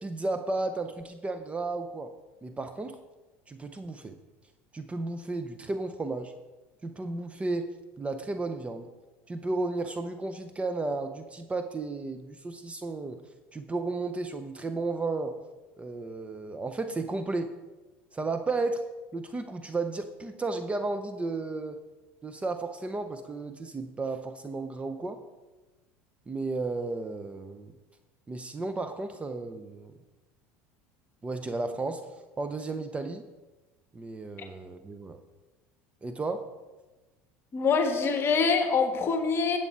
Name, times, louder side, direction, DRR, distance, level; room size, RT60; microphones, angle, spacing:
voice 1, 0.0-2.1 2.4-3.0 3.5-4.2 4.7-6.3 6.8-8.9 9.3-13.2 13.5-15.4 15.8-17.5 18.1-18.8 19.1-21.8 22.2-25.2 26.3-27.7 28.3-29.9 31.2-32.1 32.4-33.3 33.9-35.2 36.0-36.5, right 3 dB, 20° right, 8 dB, 0.8 m, -33 dB
voice 2, 37.5-39.6, left 5 dB, 40° left, 5 dB, 1.3 m, -25 dB
11.0 x 7.9 x 4.3 m, 1.2 s
hypercardioid pair, 90°, 6 cm